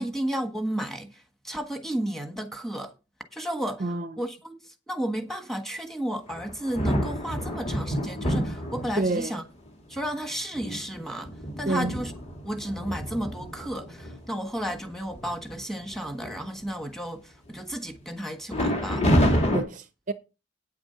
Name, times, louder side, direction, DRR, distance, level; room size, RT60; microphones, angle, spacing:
voice 1, 0.0-2.9 3.3-3.8 4.2-9.4 9.9-11.3 11.6-12.1 12.4-19.6, right 1 dB, ahead, 1.4 m, -33 dB
voice 2, 3.8-4.2 9.0-9.4 11.7-12.0 19.5-20.1, right 2 dB, 40° right, 0.6 m, -28 dB
sound 1, 6.3-9.3 10.0-10.1 10.5-14.2 14.7-14.8 15.1-15.5 15.9-16.7 18.5-19.6, equal, 35° left, 2.5 m, -28 dB
9.2 x 7.2 x 5.8 m
head